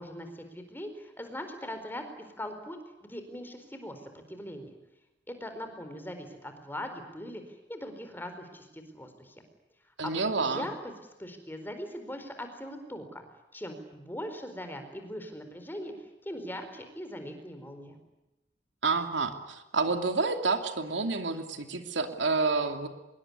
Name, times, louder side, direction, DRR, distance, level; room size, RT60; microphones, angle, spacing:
voice 1, 0.0-2.0 2.4-4.7 5.3-9.3 10.0-10.7 11.2-13.2 13.5-15.9 16.2-18.0, left 1 dB, 10° left, 7 dB, 4.4 m, -40 dB
voice 2, 10.0-10.7 18.8-22.9, right 4 dB, 80° right, 7 dB, 2.6 m, -29 dB
25.5 x 22.5 x 9.7 m, 0.97 s
head